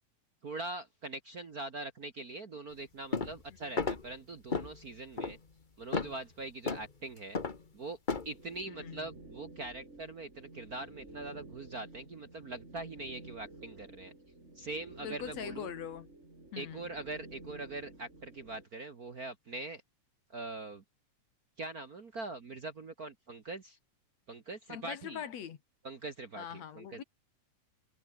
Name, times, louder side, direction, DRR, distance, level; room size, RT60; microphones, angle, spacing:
voice 1, 0.4-5.4 5.8-7.4 7.7-8.0 8.2-14.1 14.5-15.7 16.6-19.8 20.3-20.8 21.6-23.8 24.3-25.2 25.8-27.0, right 2 dB, 40° right, 1.5 m, -42 dB
sound 1, 3.1-3.4 3.8-4.0 4.5-4.8 5.2-5.3 5.9-6.2 6.7-6.8 7.3-7.6 8.1-8.3, left 4 dB, 35° left, 0.7 m, -33 dB
sound 2, 8.3-18.7, right 2 dB, 20° right, 5.1 m, -52 dB
voice 2, 8.7-9.1 15.0-16.1 16.5-16.9 24.7-25.6 26.4-27.0, left 9 dB, 65° left, 2.9 m, -42 dB
omnidirectional pair, 3.4 m